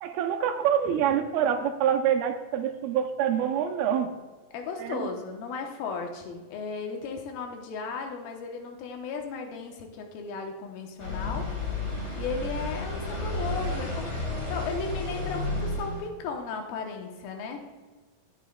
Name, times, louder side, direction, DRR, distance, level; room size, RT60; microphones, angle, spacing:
voice 1, 0.0-4.1 4.8-5.1, right 9 dB, 85° right, 4 dB, 2.5 m, -26 dB
voice 2, 4.5-11.5 12.2-14.1 14.5-17.6, left 4 dB, 85° left, 3 dB, 2.8 m, -35 dB
sound 1, 11.0-16.1, left 2 dB, 45° left, 0.9 m, -32 dB
13.5 x 8.9 x 2.3 m, 1.3 s
omnidirectional pair, 4.2 m